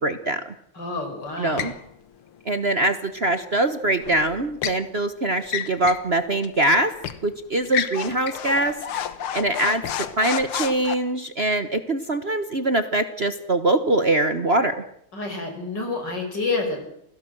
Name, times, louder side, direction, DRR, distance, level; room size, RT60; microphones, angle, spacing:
voice 1, 0.0-0.4 1.4-1.7 2.4-6.9 7.2-8.8 9.3-9.8 10.2-14.7, right 2 dB, 35° right, 10 dB, 1.1 m, -23 dB
voice 2, 0.7-1.7 15.1-16.9, left 3 dB, 50° left, 5 dB, 6.1 m, -28 dB
sound 1, 1.6-1.8 4.0-4.8 5.4-6.1 6.4-6.6 7.0-7.2 7.7-10.9, left 9 dB, 75° left, 2.1 m, -30 dB
28.5 x 17.5 x 7.8 m, 0.72 s
omnidirectional pair, 2.4 m